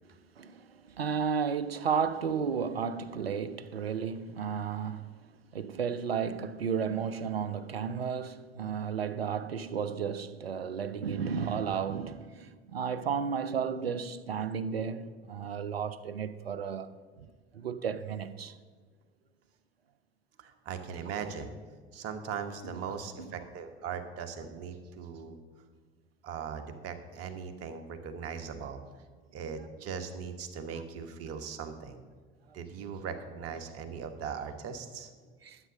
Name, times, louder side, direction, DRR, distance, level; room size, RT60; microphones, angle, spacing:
voice 1, 0.4-0.7 0.9-5.0 5.5-16.9 17.5-18.5 23.2-23.3 35.4-35.6, right 6 dB, 85° right, 0.6 m, -33 dB
voice 2, 20.4-21.5 21.9-25.4 26.2-28.8 29.3-32.0 32.5-35.1, right 6 dB, 50° right, 1.5 m, -39 dB
12.0 x 8.3 x 6.4 m
figure-of-eight pair, 60°, 29 cm